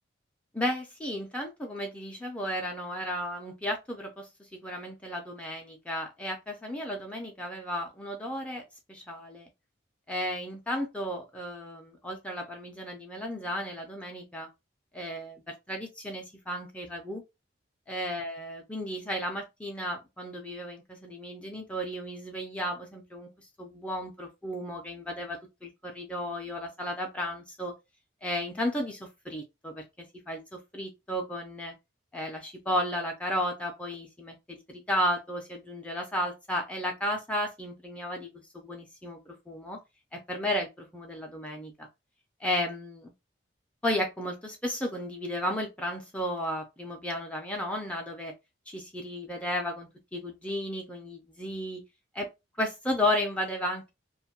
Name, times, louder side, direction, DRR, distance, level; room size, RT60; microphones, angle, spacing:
voice 1, 0.5-8.6 8.9-9.5 10.1-14.5 14.9-17.2 17.9-27.7 28.2-29.8 30.3-31.7 32.1-39.8 40.3-41.9 42.4-43.1 43.8-48.3 48.7-51.8 52.1-52.3 52.6-53.9, left 1 dB, 5° left, 0.4 m, -34 dB
2.5 x 2.2 x 2.8 m
head